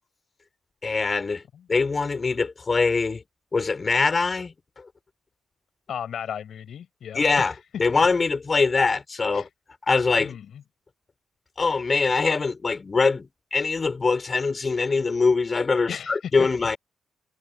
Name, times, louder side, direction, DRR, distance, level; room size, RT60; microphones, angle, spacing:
voice 1, 0.8-1.4 1.7-3.2 3.5-4.5 7.1-7.5 7.8-9.5 9.9-10.3 11.6-16.8, left 4 dB, 35° left, 6.1 m, -23 dB
voice 2, 5.9-7.8 9.3-9.5 10.2-10.6 15.9-16.5, left 8 dB, 70° left, 6.9 m, -36 dB
cardioid pair, 80°, 0 cm